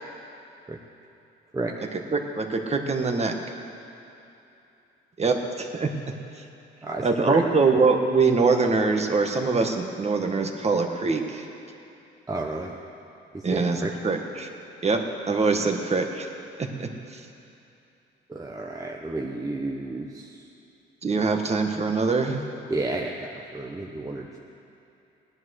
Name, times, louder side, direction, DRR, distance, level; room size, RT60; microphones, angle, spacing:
voice 1, 1.9-3.3 5.2-5.9 7.0-11.4 13.4-14.5 14.8-15.0 15.3-16.3 16.6-17.2 21.0-22.4, right 4 dB, 35° right, 4 dB, 1.5 m, -23 dB
voice 2, 6.8-7.4 12.3-12.7 13.3-13.9 15.6-15.7 18.3-20.4 22.7-24.4, right 2 dB, 15° right, 0 dB, 1.1 m, -31 dB
17.0 x 10.5 x 6.5 m, 2.8 s
cardioid pair, 90°, 20 cm